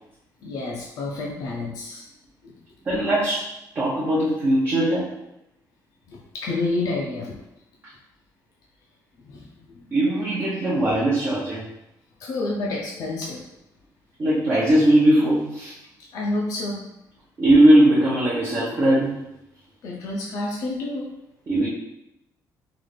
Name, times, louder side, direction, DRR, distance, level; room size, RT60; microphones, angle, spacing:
voice 1, 0.4-2.0 2.4-2.6 6.1-7.4 9.2-9.9 12.2-13.4 16.1-16.8 19.8-21.1, left 2 dB, 55° left, -3 dB, 0.5 m, -29 dB
voice 2, 2.9-5.1 9.9-11.6 14.2-15.7 17.4-19.2 21.5-21.7, right 1 dB, 30° right, -9 dB, 0.8 m, -19 dB
3.9 x 2.5 x 3.2 m, 0.88 s
cardioid pair, 175°, 7 cm